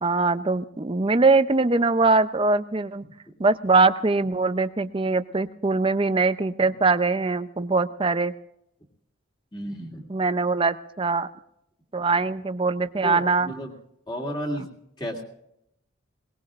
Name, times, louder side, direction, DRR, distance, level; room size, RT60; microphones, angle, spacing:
voice 1, 0.0-3.0 3.4-8.3 10.1-11.3 11.9-13.5, right 3 dB, 25° right, 12 dB, 0.5 m, -22 dB
voice 2, 9.5-10.1 13.0-13.7 14.1-14.7 15.0-15.2, equal, 20° left, 0 dB, 2.6 m, -32 dB
21.5 x 19.5 x 2.5 m, 0.76 s
head